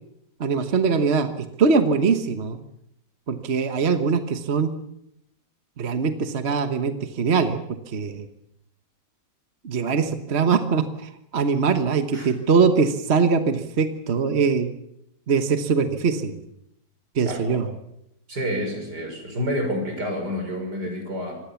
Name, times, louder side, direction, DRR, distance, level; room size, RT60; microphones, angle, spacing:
voice 1, 0.4-2.6 3.3-4.7 5.8-7.6 7.9-8.3 9.6-14.7 15.3-16.4 17.1-17.6, right 5 dB, 40° right, 8 dB, 1.3 m, -22 dB
voice 2, 17.2-17.6 18.3-21.4, equal, 75° right, 4 dB, 6.6 m, -29 dB
26.0 x 20.0 x 7.1 m, 0.81 s
omnidirectional pair, 1.8 m